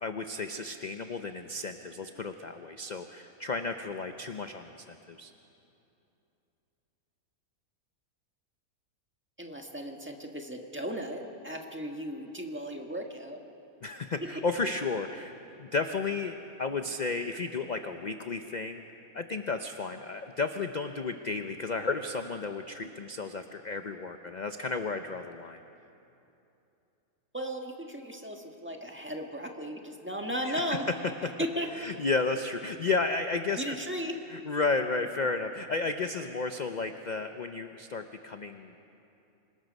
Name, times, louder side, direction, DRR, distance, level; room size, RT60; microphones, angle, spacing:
voice 1, 0.0-5.3 13.8-18.8 19.1-25.6 30.4-31.0 31.7-33.8 34.3-38.7, left 3 dB, 50° left, 7 dB, 0.5 m, -33 dB
voice 2, 9.4-13.4 27.3-30.9 31.4-31.9 33.6-34.2, equal, 10° right, 2 dB, 1.4 m, -36 dB
26.0 x 20.0 x 5.3 m, 2.8 s
omnidirectional pair, 1.6 m